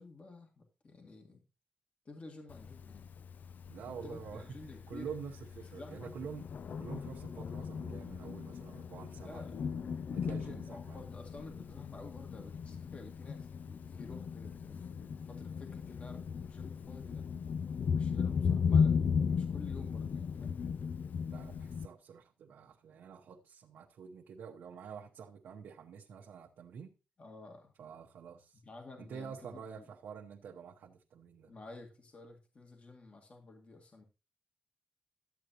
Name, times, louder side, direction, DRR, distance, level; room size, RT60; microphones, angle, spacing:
voice 1, 0.0-1.4 2.1-3.1 3.9-5.1 5.8-6.1 9.2-9.7 10.0-17.3 17.9-20.6 27.2-27.7 28.6-29.9 31.5-34.0, left 3 dB, 40° left, 1.9 m, -51 dB
Thunder, 2.5-21.9, left 6 dB, 60° left, 0.4 m, -36 dB
voice 2, 3.7-4.5 4.9-6.5 6.8-9.5 10.1-11.0 21.3-26.9 27.8-28.6 29.0-31.5, right 6 dB, 90° right, 0.9 m, -47 dB
12.5 x 8.0 x 2.9 m
cardioid pair, 105°, 3 cm